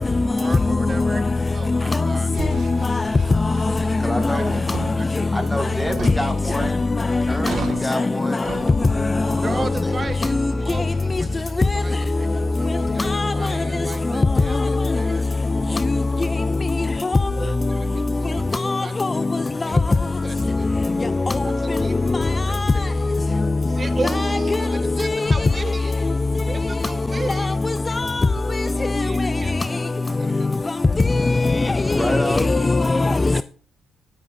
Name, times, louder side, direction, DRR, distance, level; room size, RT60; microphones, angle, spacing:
voice 1, 0.3-1.2 1.5-2.7 3.0-3.2 4.1-4.4 9.4-10.3 10.6-11.4 11.7-12.3 12.6-15.2 17.3-18.9 19.7-19.8 20.2-20.7 21.4-21.5 21.8-21.9 22.2-22.4 22.7-22.9 23.7-25.9 26.5-27.6 28.7-29.7 30.0-31.0, right 3 dB, 30° right, 0.8 m, -35 dB
sound 1, 2.3-16.1, right 5 dB, 65° right, 2.2 m, -37 dB
voice 2, 4.0-4.6 5.3-6.8 7.2-8.5 9.4-10.1 31.9-32.5, equal, 5° left, 1.9 m, -28 dB
voice 3, 18.6-19.1 24.2-24.3 27.9-28.3 31.2-31.6 31.9-32.0 32.4-33.3, left 3 dB, 25° left, 0.4 m, -20 dB
19.5 x 8.6 x 2.7 m
cardioid pair, 90°, 0 cm